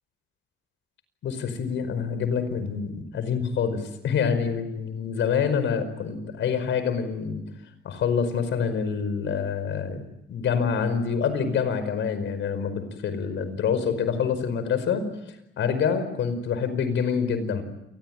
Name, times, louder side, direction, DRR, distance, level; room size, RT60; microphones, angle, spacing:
voice 1, 1.2-7.4 7.8-10.0 10.3-17.6, left 6 dB, 70° left, 11 dB, 5.1 m, -26 dB
28.0 x 21.0 x 9.0 m, 0.85 s
cardioid pair, 90°, 20 cm